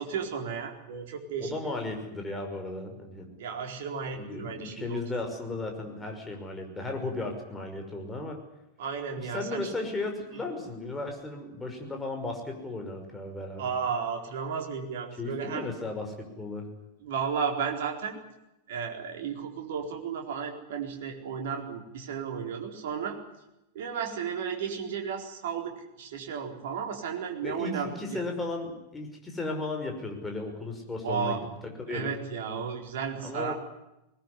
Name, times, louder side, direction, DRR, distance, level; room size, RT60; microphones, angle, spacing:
voice 1, 0.0-1.8 3.4-5.0 8.8-9.7 13.6-15.7 17.0-18.2 18.7-23.2 23.7-28.2 31.0-31.4 31.9-33.5, right 6 dB, 55° right, 2 dB, 4.3 m, -33 dB
voice 2, 1.4-3.3 4.2-8.4 9.2-13.7 15.2-16.7 27.4-32.1 33.2-33.5, left 2 dB, 10° left, 3 dB, 5.8 m, -35 dB
20.5 x 19.5 x 9.8 m, 0.91 s
figure-of-eight pair, 90°, 0 cm